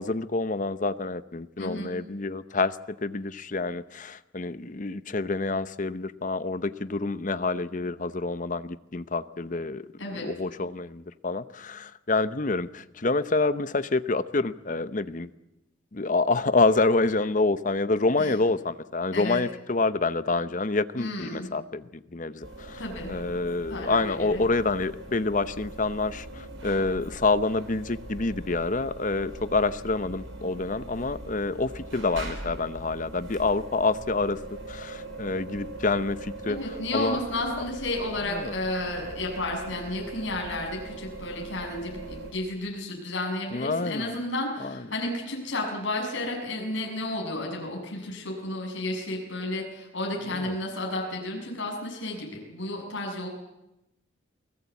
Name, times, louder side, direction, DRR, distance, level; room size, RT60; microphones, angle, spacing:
voice 1, 0.0-9.9 10.1-15.3 15.9-22.8 23.1-34.4 34.7-37.2 38.3-38.5 43.5-44.2 44.6-44.8 50.3-50.6, left 3 dB, 40° left, 14 dB, 0.8 m, -27 dB
voice 2, 1.6-1.9 10.0-10.3 18.2-18.3 19.1-19.4 21.0-21.5 22.8-23.2 23.7-24.4 36.5-53.3, left 1 dB, 70° left, 0 dB, 7.0 m, -32 dB
sound 1, 22.4-42.3, right 2 dB, 75° right, 5.5 m, -41 dB
28.5 x 19.0 x 8.3 m, 0.91 s
head